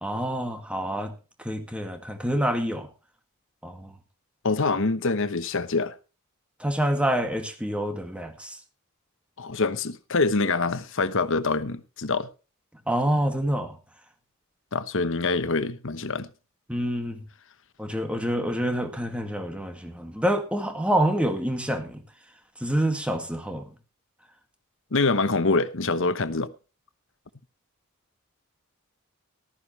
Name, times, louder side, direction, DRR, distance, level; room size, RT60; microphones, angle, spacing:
voice 1, 0.0-1.1 1.4-2.9 3.6-3.9 6.6-8.6 12.9-13.8 16.7-17.2 17.8-22.0 22.6-23.7, equal, 5° right, 2.1 m, -27 dB
voice 2, 4.4-5.9 9.4-12.3 14.7-16.3 24.9-26.5, left 3 dB, 60° left, 1.1 m, -25 dB
14.5 x 13.0 x 3.3 m
head